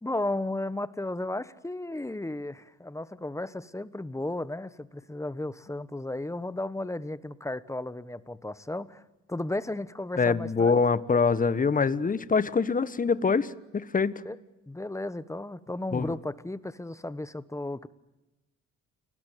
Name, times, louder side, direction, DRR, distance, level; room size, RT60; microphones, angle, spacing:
voice 1, 0.0-9.0 9.3-10.8 14.2-14.4 14.7-17.9, left 2 dB, 10° left, 16 dB, 1.3 m, -34 dB
voice 2, 10.2-14.2 15.9-16.1, left 5 dB, 25° left, 16 dB, 1.3 m, -24 dB
29.5 x 20.5 x 9.3 m, 0.99 s
cardioid pair, 90°, 30 cm